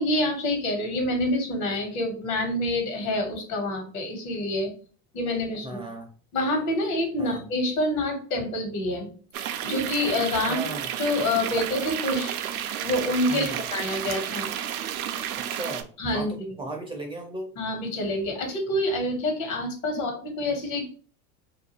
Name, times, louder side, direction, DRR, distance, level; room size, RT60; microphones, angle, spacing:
voice 1, 0.0-4.7 5.1-5.7 6.3-10.6 11.0-12.4 12.8-14.5 16.0-16.5 17.6-20.9, left 1 dB, 70° left, 3 dB, 1.2 m, -27 dB
voice 2, 5.6-6.1 7.2-7.4 10.5-10.9 13.3-13.6 15.5-17.5, right 2 dB, 15° right, 2 dB, 0.4 m, -36 dB
sound 1, 9.3-15.8, right 10 dB, 75° right, 0.5 m, -31 dB
2.6 x 2.3 x 3.0 m, 0.40 s
hypercardioid pair, 95°, 43 cm